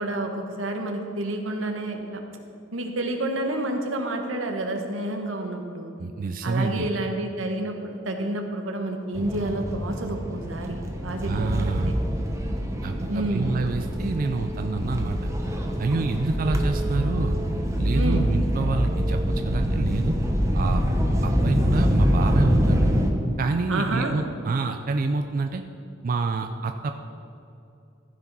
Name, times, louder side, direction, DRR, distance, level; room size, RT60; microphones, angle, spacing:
voice 1, 0.0-2.2 2.7-6.0 6.4-11.5 11.9-12.0 13.1-13.5 17.9-18.3 23.7-24.1, right 1 dB, 90° right, 4 dB, 1.2 m, -29 dB
voice 2, 6.0-6.9 11.2-11.9 12.8-15.2 15.8-17.4 17.8-20.1 20.5-20.8 21.2-22.9 23.4-25.6 26.0-26.9, right 3 dB, 45° right, 6 dB, 0.4 m, -27 dB
sound 1, 9.1-23.1, equal, 15° right, 1.0 m, -25 dB
14.5 x 5.1 x 5.4 m, 2.7 s
head